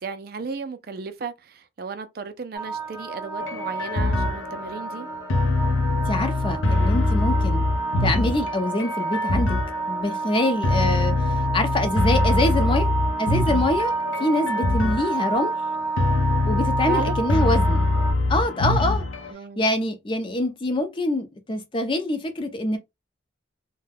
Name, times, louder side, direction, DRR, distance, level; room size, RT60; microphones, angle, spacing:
voice 1, 0.0-5.1 14.2-14.3 16.9-17.2 19.3-19.6, right 4 dB, 50° right, 0.4 m, -34 dB
sound 1, 2.5-18.1, right 4 dB, 15° right, 0.7 m, -29 dB
sound 2, 3.4-19.3, left 2 dB, 85° left, 0.6 m, -24 dB
voice 2, 6.1-7.6 8.0-9.6 9.9-12.9 13.2-13.9 14.2-15.5 16.4-17.9 18.3-19.0 19.6-22.8, left 1 dB, 25° left, 0.5 m, -25 dB
2.3 x 2.1 x 3.3 m
head